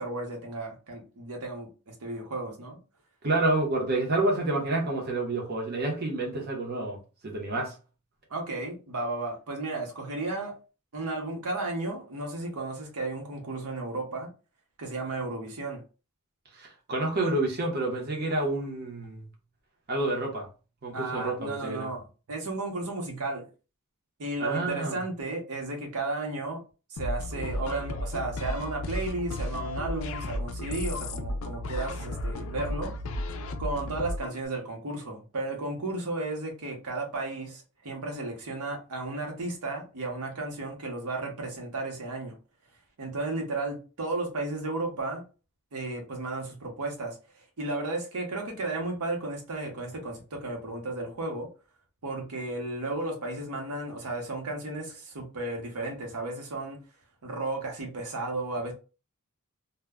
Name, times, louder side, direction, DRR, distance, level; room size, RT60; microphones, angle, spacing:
voice 1, 0.0-2.8 8.3-10.6 10.9-14.3 14.8-15.8 20.9-23.5 24.2-26.6 26.9-32.9 33.6-42.4 43.0-45.2 45.7-47.2 47.6-51.5 52.0-56.8 57.2-58.7, right 2 dB, 90° right, 0.8 m, -34 dB
voice 2, 3.2-7.7 16.5-19.2 19.9-20.5 20.8-21.9 24.4-25.0, right 2 dB, 45° right, 0.7 m, -29 dB
sound 1, 27.0-34.4, left 1 dB, 65° left, 0.4 m, -34 dB
2.1 x 2.1 x 3.4 m
head